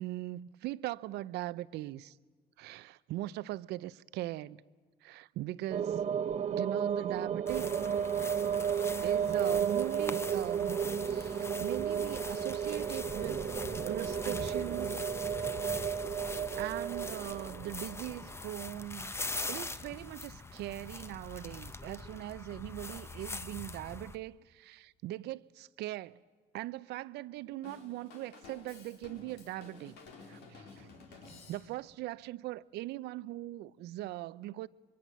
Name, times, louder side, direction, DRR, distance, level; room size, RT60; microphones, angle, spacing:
voice 1, 0.0-2.1 2.6-4.6 5.0-6.0 6.5-7.8 9.0-13.4 13.9-15.0 16.6-19.1 19.5-26.2 26.5-30.0 30.3-31.2 31.5-34.7, right 16 dB, 80° right, 0.7 m, -40 dB
sound 1, 5.7-18.2, right 8 dB, 40° right, 0.7 m, -33 dB
sound 2, 7.5-24.2, left 3 dB, 15° left, 0.9 m, -43 dB
Drum kit / Drum, 27.6-32.0, left 4 dB, 85° left, 4.1 m, -53 dB
25.0 x 23.5 x 7.4 m
cardioid pair, 110°, 17 cm